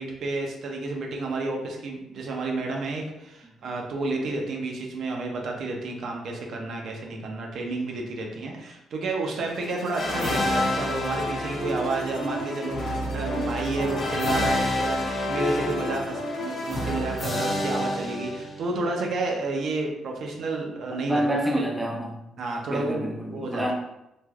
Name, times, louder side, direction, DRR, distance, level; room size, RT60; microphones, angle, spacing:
voice 1, 0.0-21.2 22.4-23.1 23.3-23.7, right 2 dB, 65° right, 0 dB, 0.6 m, -30 dB
sound 1, 9.2-17.7, left 1 dB, 80° left, 0.8 m, -44 dB
sound 2, 10.0-18.8, left 1 dB, 40° left, 0.7 m, -28 dB
voice 2, 21.1-22.2 22.7-23.7, right 1 dB, 5° right, -1 dB, 0.6 m, -27 dB
3.3 x 2.6 x 2.3 m, 0.88 s
cardioid pair, 90°, 0 cm